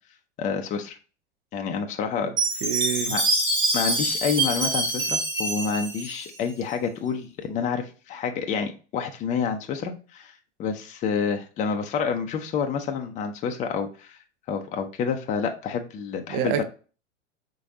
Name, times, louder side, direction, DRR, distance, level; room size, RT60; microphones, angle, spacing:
voice 1, 0.4-1.0 1.5-2.3 3.1-3.2 3.7-10.3 10.6-14.2 14.5-16.6, left 6 dB, 20° left, 0.5 m, -28 dB
Chime, 2.4-6.7, right 2 dB, 70° right, 2.5 m, -25 dB
voice 2, 2.6-3.1 16.3-16.6, right 10 dB, 35° right, 0.5 m, -27 dB
5.0 x 3.8 x 2.7 m
figure-of-eight pair, 90°, 36 cm